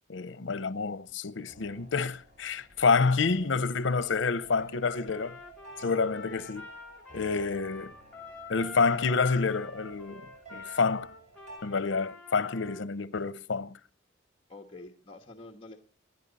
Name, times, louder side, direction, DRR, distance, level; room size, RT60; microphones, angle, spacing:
voice 1, 0.1-5.4 5.8-6.7 7.1-7.9 8.5-10.2 10.5-11.1 11.6-13.7, left 4 dB, 80° left, 0.7 m, -28 dB
sound 1, 1.4-11.6, right 2 dB, 40° right, 6.4 m, -51 dB
Trumpet, 5.1-12.9, left 4 dB, 10° left, 3.7 m, -47 dB
voice 2, 7.1-7.5 14.5-15.8, left 2 dB, 30° left, 1.4 m, -46 dB
27.5 x 11.0 x 4.1 m
head